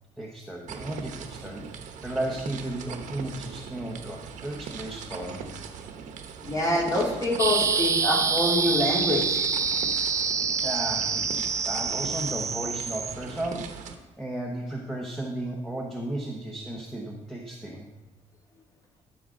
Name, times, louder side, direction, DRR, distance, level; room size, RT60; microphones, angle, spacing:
voice 1, 0.2-1.7 2.0-5.5 10.0-10.1 10.6-11.2 11.6-13.8 14.2-17.9, right 1 dB, ahead, -1 dB, 1.1 m, -34 dB
sound 1, 0.7-13.9, right 6 dB, 75° right, 1.0 m, -40 dB
voice 2, 6.4-9.4, left 1 dB, 25° left, -2 dB, 2.5 m, -25 dB
sound 2, 7.4-13.1, right 5 dB, 25° right, 0.5 m, -26 dB
13.5 x 6.2 x 3.8 m, 1.1 s
cardioid pair, 125°, 13 cm